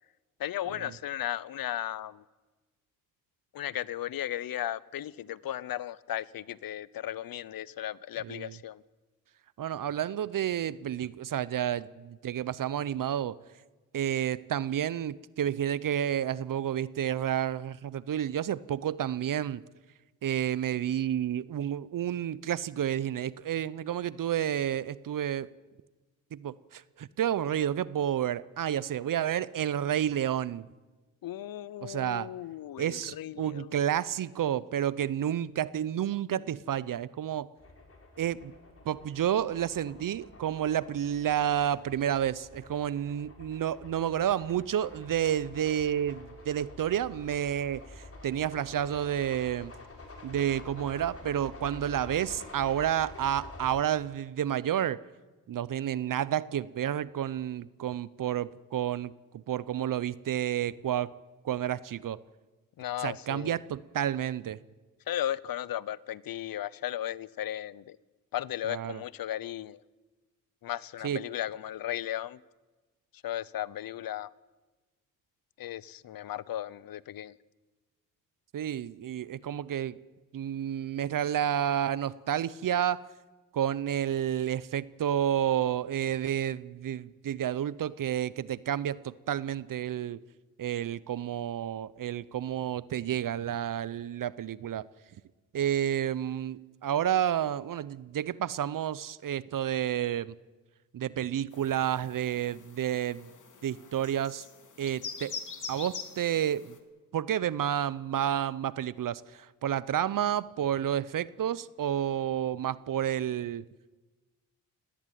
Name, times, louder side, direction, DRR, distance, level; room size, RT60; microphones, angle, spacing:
voice 1, 0.4-2.2 3.5-8.8 31.2-33.8 62.8-63.6 65.1-68.0 68.3-69.8 70.6-72.4 73.2-74.3 75.6-77.3, left 12 dB, 75° left, 0.8 m, -36 dB
voice 2, 8.2-8.5 9.6-13.4 13.9-19.6 20.2-25.5 26.3-30.7 31.8-32.3 32.8-37.5 38.2-38.5 38.8-49.7 50.2-55.0 55.5-61.1 61.4-62.2 63.0-64.6 68.6-69.0 71.0-71.2 78.5-80.0 80.3-83.0 83.5-90.2 90.6-94.9 95.5-100.4 100.9-103.3 103.6-104.5 104.8-105.3 105.7-106.8 107.1-113.6, right 10 dB, 65° right, 0.7 m, -30 dB
sound 1, 37.6-53.8, left 2 dB, 40° left, 5.1 m, -48 dB
sound 2, 101.5-106.8, left 5 dB, 55° left, 3.0 m, -44 dB
18.5 x 17.5 x 9.3 m
cardioid pair, 55°, 35 cm